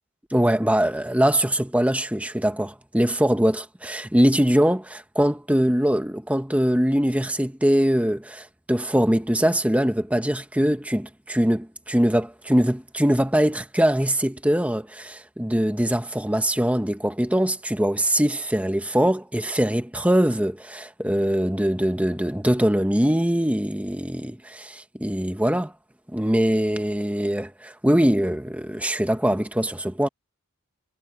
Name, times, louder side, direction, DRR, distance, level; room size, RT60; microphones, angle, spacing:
voice 1, 0.3-25.7 26.1-30.1, equal, 5° right, 1.2 m, -22 dB
head